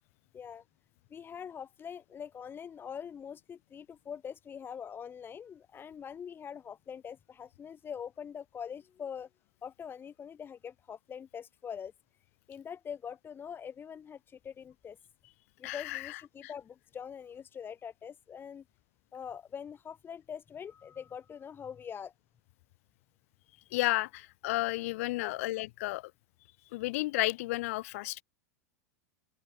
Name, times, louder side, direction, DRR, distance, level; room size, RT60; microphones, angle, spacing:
voice 1, 0.3-0.6 1.1-9.3 9.6-11.9 12.5-15.0 15.6-18.6 19.1-22.1 25.2-25.4, left 7 dB, 25° left, 5.7 m, -43 dB
voice 2, 15.6-16.2 23.7-26.0 26.7-28.2, left 20 dB, 65° left, 3.0 m, -32 dB
open air
hypercardioid pair, 100°, 8 cm